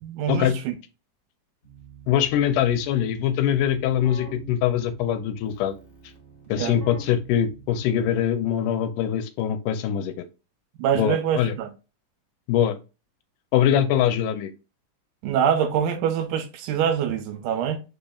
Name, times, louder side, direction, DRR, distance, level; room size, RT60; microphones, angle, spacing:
voice 1, 0.0-0.8 6.6-6.8 10.8-11.7 15.2-17.8, right 8 dB, 80° right, 2.0 m, -24 dB
Keyboard (musical), 1.6-8.5, right 5 dB, 60° left, 0.5 m, -46 dB
voice 2, 2.1-5.7 6.5-10.1 10.9-11.5 12.5-12.7 13.5-14.5, left 10 dB, 80° left, 2.0 m, -23 dB
5.2 x 4.1 x 2.3 m
omnidirectional pair, 3.8 m